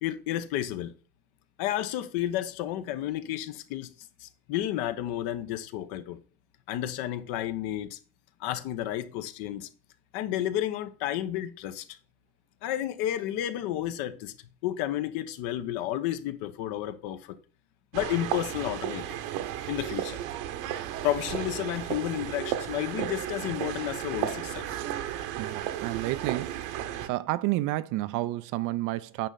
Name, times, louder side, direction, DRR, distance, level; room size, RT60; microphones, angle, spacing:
voice 1, 0.0-0.9 1.6-6.2 6.7-8.0 8.4-9.7 10.1-12.0 12.6-14.3 14.6-17.4 17.9-19.2 19.7-20.2 21.0-24.8, left 12 dB, 55° left, 1.1 m, -31 dB
sound 1, 17.9-27.1, right 11 dB, 65° right, 1.2 m, -34 dB
voice 2, 25.4-26.6 27.1-29.3, right 17 dB, 45° right, 0.6 m, -30 dB
9.1 x 5.5 x 4.0 m
supercardioid pair, 120°, 44 cm